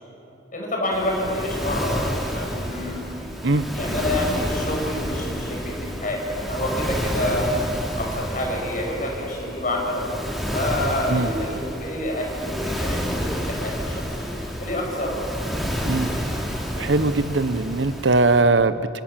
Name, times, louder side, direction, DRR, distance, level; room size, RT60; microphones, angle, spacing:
voice 1, 0.5-3.2 3.7-7.6 8.0-10.2 10.5-15.2, left 1 dB, 45° left, -1 dB, 7.0 m, -28 dB
Waves surf, 0.9-18.4, equal, ahead, 4.0 m, -29 dB
voice 2, 16.8-19.0, right 3 dB, 80° right, 13 dB, 1.0 m, -20 dB
28.5 x 27.5 x 7.6 m, 3.0 s
head